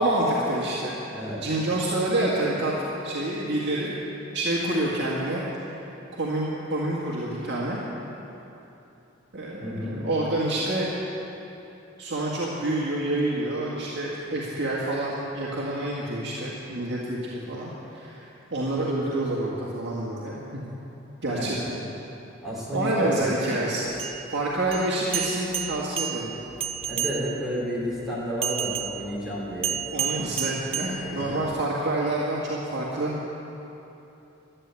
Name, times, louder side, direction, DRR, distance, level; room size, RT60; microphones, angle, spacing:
voice 1, 0.0-1.0 1.4-2.7 3.0-3.9 4.3-5.4 6.1-7.8 9.3-10.9 12.0-18.2 18.5-20.6 21.2-21.9 22.7-23.9 24.3-26.3 29.9-33.1, right 1 dB, 60° right, -6 dB, 1.9 m, -27 dB
voice 2, 1.1-1.4 9.6-10.1 21.3-21.5 22.4-23.3 26.9-29.8 31.0-31.5, equal, ahead, -7 dB, 3.8 m, -31 dB
sound 1, 23.9-27.6 28.4-31.6, right 9 dB, 30° right, 0.5 m, -32 dB
12.0 x 11.5 x 8.2 m, 3.0 s
head